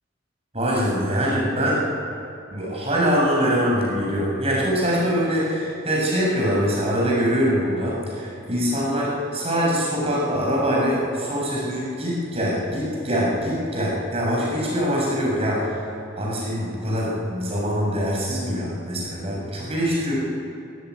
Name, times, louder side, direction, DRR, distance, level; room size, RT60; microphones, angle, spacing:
voice 1, 0.5-1.9 2.5-15.8 16.2-20.1, equal, 30° right, -4 dB, 7.3 m, -23 dB
20.0 x 16.5 x 9.6 m, 2.6 s
head